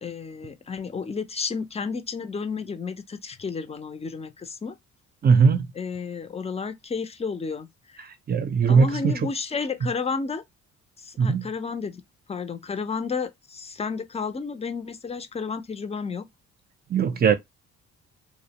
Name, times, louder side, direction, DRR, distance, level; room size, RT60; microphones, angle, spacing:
voice 1, 0.0-4.8 5.8-8.0 8.7-10.4 11.0-12.0 12.3-16.3, left 5 dB, 20° left, 0.4 m, -32 dB
voice 2, 5.2-5.7 8.3-9.1 11.2-11.4 16.9-17.4, right 5 dB, 30° right, 0.5 m, -19 dB
2.5 x 2.0 x 2.8 m
cardioid pair, 90°, 30 cm